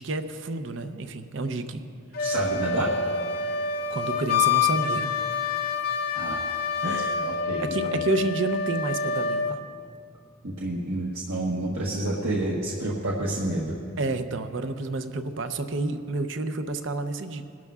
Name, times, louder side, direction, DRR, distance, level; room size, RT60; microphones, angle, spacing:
voice 1, 0.0-1.8 3.9-5.1 6.8-7.3 7.6-9.6 14.0-17.4, right 3 dB, 60° right, 9 dB, 0.6 m, -30 dB
Wind instrument woodwind instrument, 2.1-9.6, left 5 dB, 45° left, 0.6 m, -27 dB
voice 2, 2.2-2.9 6.1-6.4 6.8-8.0 10.4-13.7, right 1 dB, 80° right, -4 dB, 1.2 m, -29 dB
22.0 x 12.0 x 2.4 m, 2.4 s
head